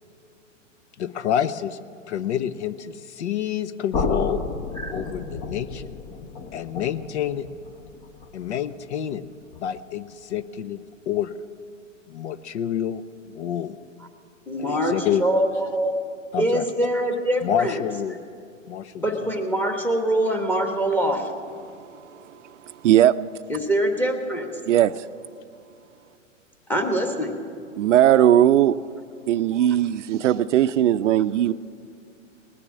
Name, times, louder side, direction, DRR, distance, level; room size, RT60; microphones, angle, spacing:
voice 1, 1.0-1.8 2.1-4.5 4.9-5.9 6.5-7.5 8.3-9.2 9.6-10.8 11.1-11.4 12.1-13.0 13.3-13.8 14.6-15.2 16.3-16.7 17.4-18.1 18.7-19.0, left 10 dB, 60° left, 14 dB, 0.7 m, -28 dB
sound 1, 3.9-9.8, left 4 dB, 40° left, 1.1 m, -32 dB
voice 2, 14.5-15.9 16.4-17.8 19.0-21.3 23.5-24.5 26.7-27.4, right 1 dB, 5° left, 4 dB, 1.3 m, -24 dB
voice 3, 22.8-23.1 24.7-24.9 27.8-28.8 29.3-31.5, right 11 dB, 65° right, 14 dB, 0.5 m, -18 dB
19.5 x 6.8 x 8.3 m, 2.5 s
hypercardioid pair, 125°, 39 cm